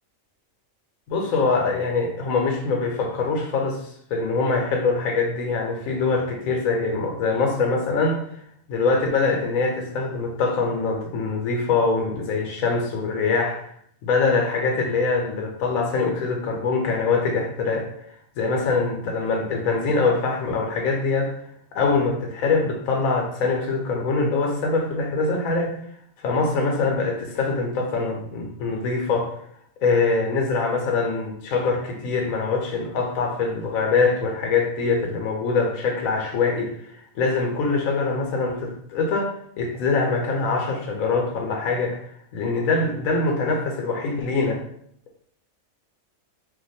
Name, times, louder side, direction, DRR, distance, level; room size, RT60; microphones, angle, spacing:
voice 1, 1.1-13.7 14.0-21.3 21.7-25.8 26.2-29.4 29.8-44.6, left 4 dB, 85° left, 1 dB, 1.0 m, -24 dB
2.5 x 2.2 x 4.0 m, 0.67 s
omnidirectional pair, 1.4 m